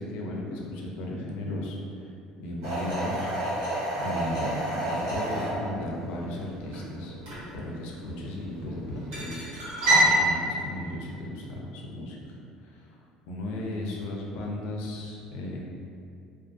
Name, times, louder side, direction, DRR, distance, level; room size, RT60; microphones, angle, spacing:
voice 1, 0.0-1.8 2.4-3.3 4.0-7.1 7.5-12.2 12.6-13.0 13.3-15.6, left 1 dB, 75° left, -2 dB, 0.4 m, -35 dB
sound 1, 2.6-10.2, right 1 dB, 70° right, 1.1 m, -29 dB
2.4 x 2.3 x 2.4 m, 2.5 s
cardioid pair, 180°, 2 cm